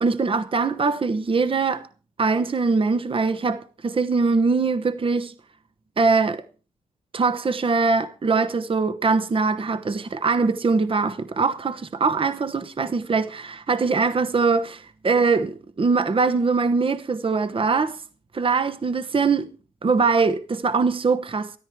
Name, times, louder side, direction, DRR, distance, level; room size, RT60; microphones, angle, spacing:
voice 1, 0.0-1.9 2.2-5.3 6.0-6.4 7.1-18.0 18.3-19.5 19.8-21.5, right 4 dB, 35° right, 1.0 m, -22 dB
14.0 x 13.0 x 4.6 m
supercardioid pair, 55°, 15 cm